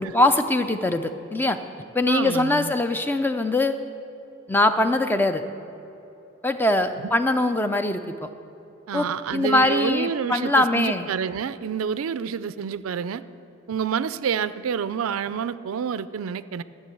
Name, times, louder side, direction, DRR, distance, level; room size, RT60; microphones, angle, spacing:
voice 1, 0.0-1.6 1.9-3.8 4.5-5.4 6.4-8.3 8.9-11.1, left 2 dB, 10° left, 8 dB, 0.4 m, -22 dB
voice 2, 2.1-2.7 8.9-13.2 13.7-16.6, right 7 dB, 90° right, 15 dB, 0.4 m, -28 dB
12.5 x 6.8 x 7.8 m, 2.9 s
head